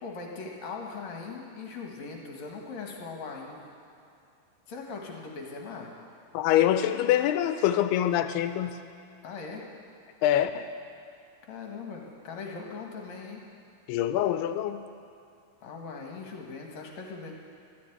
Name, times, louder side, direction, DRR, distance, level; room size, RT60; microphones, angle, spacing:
voice 1, 0.0-3.6 4.7-5.9 9.2-9.6 11.5-13.4 15.6-17.3, left 4 dB, 60° left, 0 dB, 2.0 m, -40 dB
voice 2, 6.3-8.8 10.2-10.7 13.9-14.8, left 11 dB, 80° left, 10 dB, 2.4 m, -25 dB
13.5 x 10.5 x 9.1 m, 2.5 s
omnidirectional pair, 4.9 m